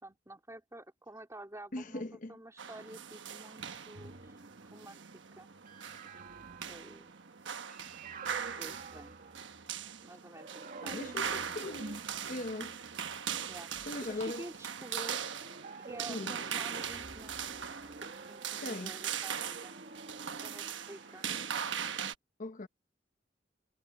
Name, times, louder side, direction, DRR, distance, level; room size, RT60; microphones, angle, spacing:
voice 1, 0.0-4.4 4.7-5.0 5.4-5.6 6.7-7.1 8.6-9.2 10.0-11.1 13.5-15.2 15.8-17.4 17.8-19.7 20.3-21.3, right 1 dB, 15° right, 2.9 m, -50 dB
voice 2, 1.7-2.4 10.8-12.8 13.9-14.5 16.1-16.4 18.6-18.9 22.4-22.7, left 2 dB, 45° left, 0.9 m, -40 dB
sound 1, 2.6-22.1, right 8 dB, 85° right, 1.2 m, -40 dB
sound 2, 3.9-9.9 10.4-14.3 15.1-21.6, right 3 dB, 50° right, 2.0 m, -50 dB
head